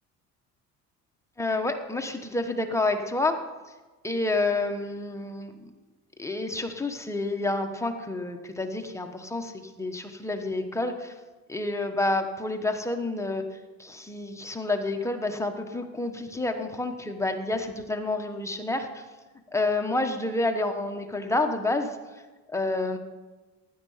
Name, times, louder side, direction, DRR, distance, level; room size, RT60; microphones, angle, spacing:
voice 1, 1.4-3.4 4.0-5.5 6.2-9.5 9.8-11.1 11.5-13.5 13.8-19.0 19.5-22.0 22.5-23.0, left 2 dB, 10° left, 4 dB, 1.1 m, -29 dB
16.0 x 11.0 x 5.6 m, 1.2 s
cardioid pair, 140°, 32 cm